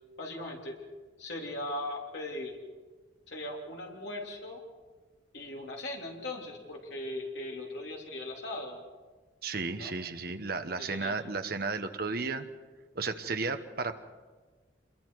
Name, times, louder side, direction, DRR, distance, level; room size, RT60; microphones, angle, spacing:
voice 1, 0.2-0.8 1.2-2.6 3.3-4.6 5.3-8.8 9.8-9.9 10.8-11.2, left 1 dB, 65° left, 0 dB, 3.2 m, -39 dB
voice 2, 9.4-12.5 12.9-14.0, right 4 dB, 50° right, 8 dB, 1.0 m, -33 dB
26.0 x 22.0 x 4.7 m, 1.4 s
head